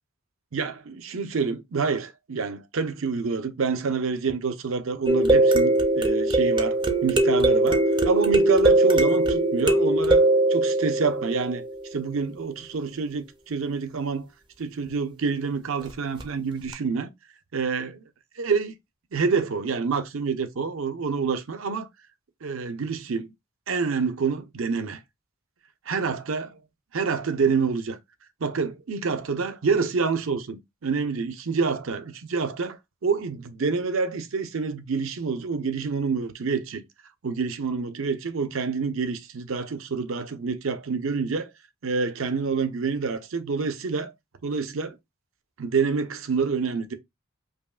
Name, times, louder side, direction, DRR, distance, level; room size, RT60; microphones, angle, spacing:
voice 1, 0.5-11.6 11.9-14.3 14.6-17.1 17.5-18.0 18.4-18.7 19.1-21.9 22.4-23.3 23.7-25.0 25.9-26.6 26.9-28.0 28.4-36.8 37.2-41.5 41.8-44.1 44.4-45.0 45.6-46.9, right 5 dB, 70° right, 0.6 m, -27 dB
sound 1, 5.1-12.0 16.2-16.3 16.7-16.8, right 2 dB, 20° right, 0.4 m, -21 dB
5.0 x 2.4 x 2.3 m
head